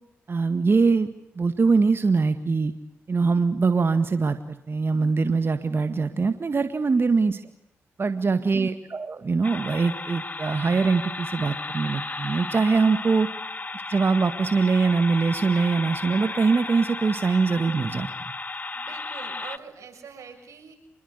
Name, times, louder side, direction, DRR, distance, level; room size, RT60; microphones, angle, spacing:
voice 1, 0.3-2.7 3.1-7.4 8.0-13.3 13.7-18.1, right 4 dB, 45° right, 10 dB, 1.9 m, -23 dB
voice 2, 8.0-8.5 12.8-13.1 18.7-20.8, right 6 dB, 75° right, 5 dB, 6.5 m, -45 dB
sound 1, 9.4-19.6, left 3 dB, 30° left, 1.5 m, -34 dB
26.5 x 21.0 x 8.2 m, 0.80 s
supercardioid pair, 50°, 5 cm